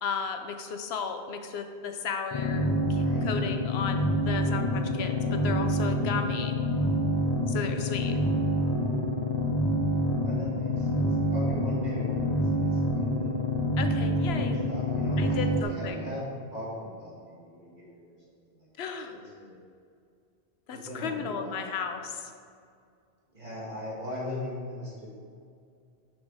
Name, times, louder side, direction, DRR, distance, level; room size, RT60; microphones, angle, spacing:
voice 1, 0.0-6.6 7.5-8.2 13.8-14.6 15.2-16.0 18.8-19.1 20.7-22.3, left 6 dB, 80° left, 7 dB, 0.9 m, -34 dB
sound 1, 2.3-15.6, equal, 30° left, 0.7 m, -27 dB
voice 2, 3.0-3.3 10.2-13.3 14.3-18.1 18.8-19.5 20.7-21.7 23.3-25.1, left 1 dB, 40° right, -7 dB, 2.3 m, -39 dB
6.3 x 6.2 x 4.9 m, 2.3 s
omnidirectional pair, 1.1 m